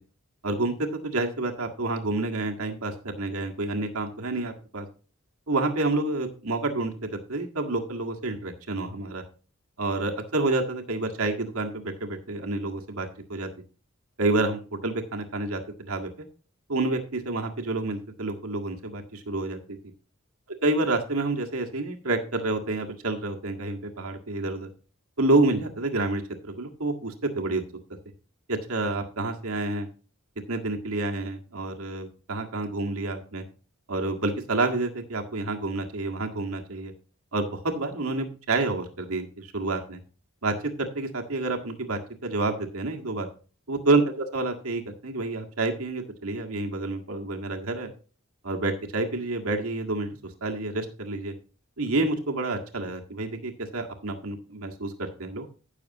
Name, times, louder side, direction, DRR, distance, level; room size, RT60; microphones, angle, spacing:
voice 1, 0.4-4.9 5.5-9.2 9.8-13.5 14.2-16.1 16.7-19.6 20.6-24.7 25.2-27.6 28.5-29.9 30.5-33.4 33.9-36.9 37.3-40.0 40.4-43.3 43.7-47.9 48.4-51.3 51.8-55.5, right 2 dB, 85° right, 3 dB, 1.8 m, -28 dB
15.5 x 6.6 x 3.0 m, 0.38 s
head